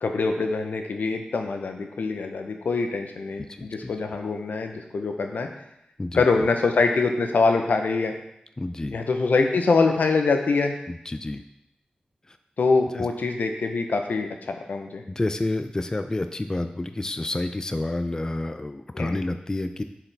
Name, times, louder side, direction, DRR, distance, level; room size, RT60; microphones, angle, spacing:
voice 1, 0.0-5.5 6.1-8.1 8.9-10.8 12.6-15.0 18.9-19.2, left 4 dB, 85° left, 4 dB, 0.7 m, -24 dB
voice 2, 3.5-3.9 6.0-6.2 8.6-9.0 10.9-11.4 12.3-12.4 12.9-13.1 15.1-19.8, left 2 dB, 25° left, 8 dB, 0.4 m, -29 dB
7.2 x 4.8 x 3.4 m, 0.80 s
wide cardioid pair, 90°, 3 cm